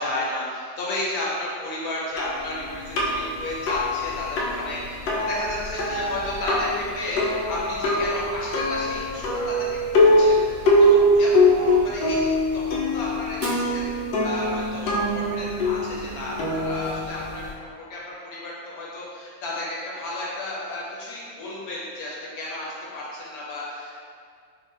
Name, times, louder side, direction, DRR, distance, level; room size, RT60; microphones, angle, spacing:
voice 1, 0.0-24.0, left 1 dB, 55° left, -6 dB, 1.3 m, -33 dB
sound 1, 2.2-17.5, left 1 dB, 75° left, 1.4 m, -23 dB
Fire, 13.3-15.3, right 1 dB, 65° right, 1.4 m, -42 dB
5.7 x 2.4 x 3.4 m, 2.1 s
omnidirectional pair, 2.2 m